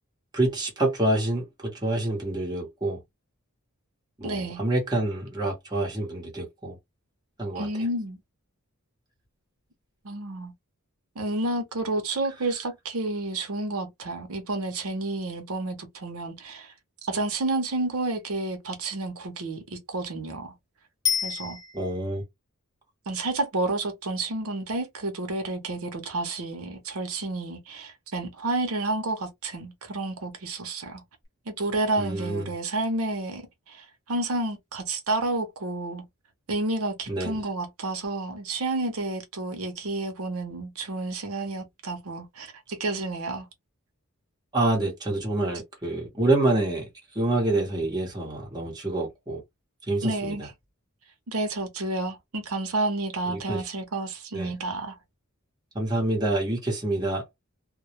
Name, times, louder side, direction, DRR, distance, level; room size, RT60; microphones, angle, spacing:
voice 1, 0.3-3.0 4.2-6.8 7.4-7.7 21.7-22.2 32.0-32.5 37.1-37.4 44.5-46.9 47.1-49.4 49.9-50.5 53.3-53.6 54.3-54.5 55.7-57.2, right 2 dB, 20° right, 0.9 m, -27 dB
voice 2, 4.2-4.6 7.5-8.2 10.0-10.5 11.2-16.7 17.0-20.5 21.2-21.6 23.1-31.0 31.5-36.0 36.5-43.5 50.0-50.5 51.3-54.9, right 2 dB, 75° right, 0.7 m, -30 dB
Bicycle bell, 21.1-22.2 31.2-31.3, left 8 dB, 15° left, 0.5 m, -29 dB
2.2 x 2.0 x 2.8 m
head